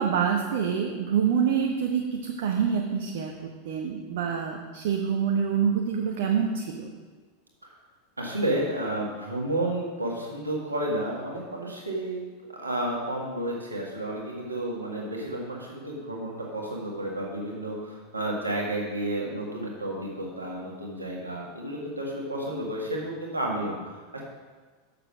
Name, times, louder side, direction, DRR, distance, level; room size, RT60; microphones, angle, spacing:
voice 1, 0.0-6.9, right 7 dB, 55° right, 1 dB, 0.8 m, -26 dB
voice 2, 8.2-24.2, right 1 dB, 80° right, -2 dB, 1.8 m, -31 dB
6.8 x 6.7 x 6.0 m, 1.4 s
figure-of-eight pair, 85°, 0 cm